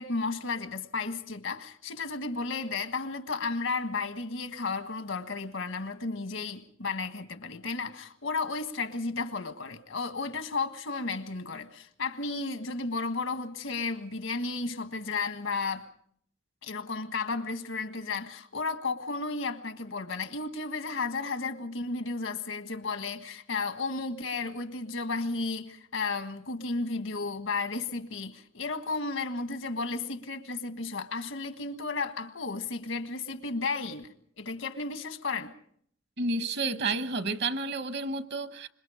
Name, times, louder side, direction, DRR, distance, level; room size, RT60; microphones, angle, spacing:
voice 1, 0.0-15.9 16.6-35.5, left 3 dB, 85° left, 1.5 m, -33 dB
voice 2, 36.2-38.7, right 3 dB, 60° right, 1.1 m, -30 dB
26.0 x 22.0 x 5.0 m
head